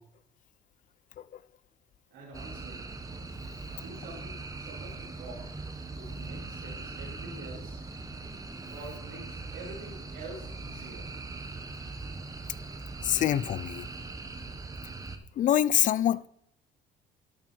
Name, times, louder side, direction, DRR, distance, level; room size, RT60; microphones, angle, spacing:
voice 1, 2.1-2.9 3.7-5.7 5.9-7.9 8.7-11.1, right 2 dB, 90° right, 4.5 m, -46 dB
sound 1, 2.3-15.2, right 3 dB, 20° right, 1.2 m, -41 dB
voice 2, 13.0-13.9 15.4-16.3, left 11 dB, 50° left, 0.5 m, -25 dB
12.5 x 7.0 x 4.4 m
cardioid pair, 110°, 17 cm